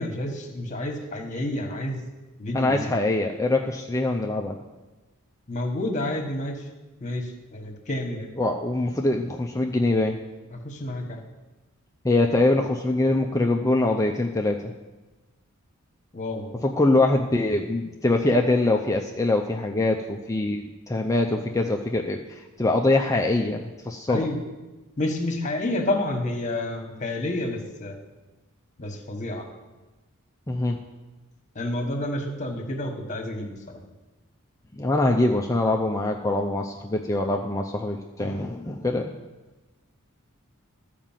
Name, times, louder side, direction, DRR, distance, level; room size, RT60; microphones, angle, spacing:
voice 1, 0.0-2.0 2.4-2.9 5.5-6.5 7.0-7.2 7.5-8.3 10.6-11.2 16.1-16.5 24.1-24.4 25.0-27.9 28.8-29.4 31.5-33.6, left 1 dB, 35° left, 3 dB, 1.4 m, -29 dB
voice 2, 2.5-4.6 8.4-10.2 12.0-14.6 16.6-24.3 30.5-30.8 34.8-39.1, left 2 dB, 15° left, 2 dB, 0.5 m, -23 dB
13.0 x 5.1 x 7.4 m, 1.2 s
head